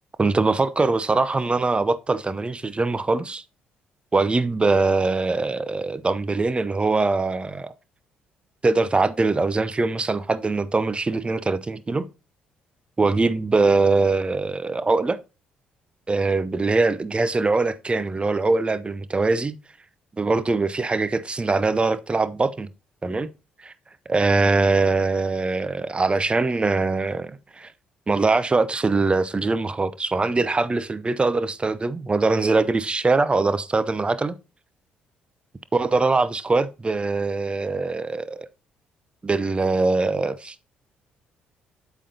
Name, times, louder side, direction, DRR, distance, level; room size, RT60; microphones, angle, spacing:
voice 1, 0.2-3.4 4.1-7.7 8.6-12.1 13.0-15.2 16.1-19.6 20.2-22.7 23.0-23.3 23.6-23.7 24.1-27.7 28.1-34.3 35.7-38.5 39.2-40.5, right 3 dB, 25° right, 0.7 m, -22 dB
8.5 x 7.1 x 2.8 m
figure-of-eight pair, 45°, 5 cm